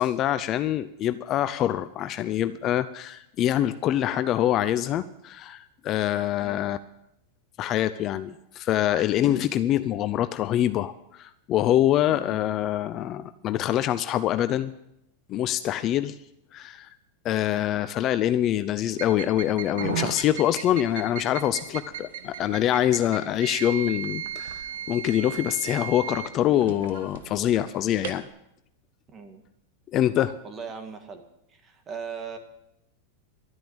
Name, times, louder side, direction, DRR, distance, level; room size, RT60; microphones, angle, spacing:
voice 1, 0.0-6.8 7.6-14.7 15.3-16.2 16.5-16.9 17.2-28.3 29.9-30.4, left 12 dB, 35° left, 12 dB, 0.5 m, -25 dB
voice 2, 6.4-6.7 12.1-12.4 29.1-29.4 30.4-31.2 31.5-32.4, right 6 dB, 25° right, 6 dB, 1.9 m, -39 dB
sound 1, 18.9-28.3, right 9 dB, 80° right, 1.4 m, -36 dB
12.5 x 9.7 x 8.8 m, 0.81 s
supercardioid pair, 145°, 0 cm